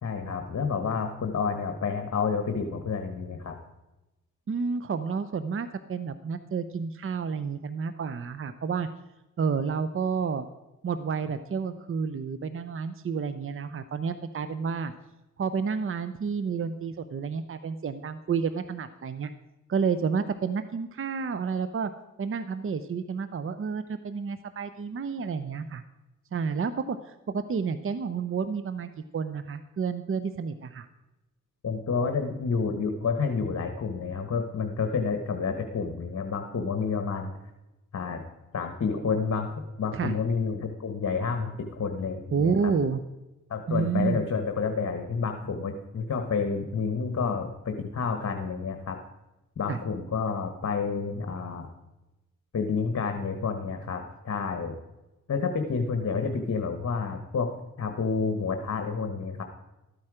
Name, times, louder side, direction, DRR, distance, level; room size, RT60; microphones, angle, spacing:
voice 1, 0.0-3.6 31.6-37.3 37.9-38.2 38.5-39.5 39.8-42.7 43.5-49.0 49.6-51.7 52.5-54.7 55.3-57.5 57.8-59.4, left 5 dB, 55° left, 6 dB, 1.2 m, -29 dB
voice 2, 4.5-8.9 9.4-10.5 10.8-14.9 15.4-19.3 19.7-21.9 22.2-25.8 26.3-30.9 39.9-40.1 42.3-43.0 43.7-44.2 49.7-49.8, right 5 dB, 45° right, 12 dB, 0.6 m, -30 dB
13.5 x 8.8 x 4.9 m, 1.0 s
cardioid pair, 80°, 30 cm